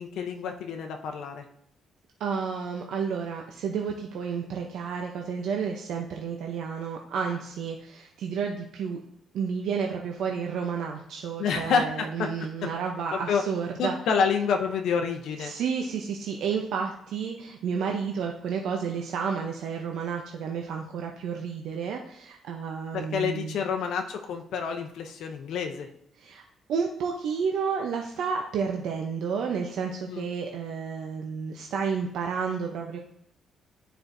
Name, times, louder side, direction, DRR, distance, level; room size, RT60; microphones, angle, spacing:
voice 1, 0.0-1.4 11.4-12.5 13.1-13.4 13.8-15.5 22.9-25.9 30.1-30.3, left 6 dB, 75° left, 4 dB, 0.6 m, -28 dB
voice 2, 2.2-9.0 9.3-14.0 15.4-23.6 26.2-26.4 26.7-33.0, right 6 dB, 75° right, 1 dB, 0.6 m, -31 dB
12.0 x 4.5 x 2.6 m, 0.69 s
cardioid pair, 150°, 0 cm